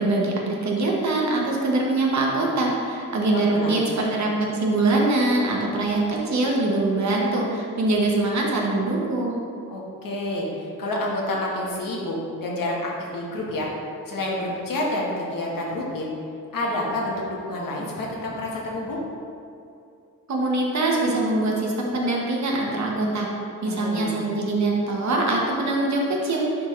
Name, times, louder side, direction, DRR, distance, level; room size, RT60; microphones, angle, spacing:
voice 1, 0.0-9.4 20.3-23.3 23.6-26.7, right 2 dB, 55° right, -2 dB, 1.0 m, -23 dB
voice 2, 3.3-3.8 9.7-13.7 14.1-16.1 16.5-19.0 23.6-24.1, left 1 dB, 75° left, -3 dB, 1.3 m, -29 dB
10.5 x 3.7 x 3.2 m, 2.5 s
wide cardioid pair, 180°, 33 cm